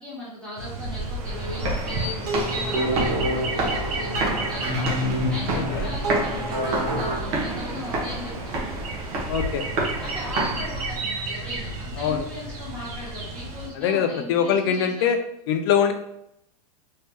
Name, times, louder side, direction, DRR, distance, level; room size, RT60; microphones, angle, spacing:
voice 1, 0.0-4.9 5.3-8.6 10.0-15.1, left 1 dB, 5° left, -9 dB, 1.1 m, -38 dB
sound 1, 0.6-13.7, right 2 dB, 65° right, 1.0 m, -32 dB
sound 2, 1.1-11.1, right 2 dB, 40° right, 1.0 m, -30 dB
sound 3, 1.9-7.2, equal, 90° right, 1.1 m, -28 dB
voice 2, 9.3-9.6 12.0-12.2 13.8-15.2 15.5-15.9, left 8 dB, 40° left, 7 dB, 0.4 m, -22 dB
3.2 x 2.8 x 3.4 m, 0.76 s
supercardioid pair, 170°, 20 cm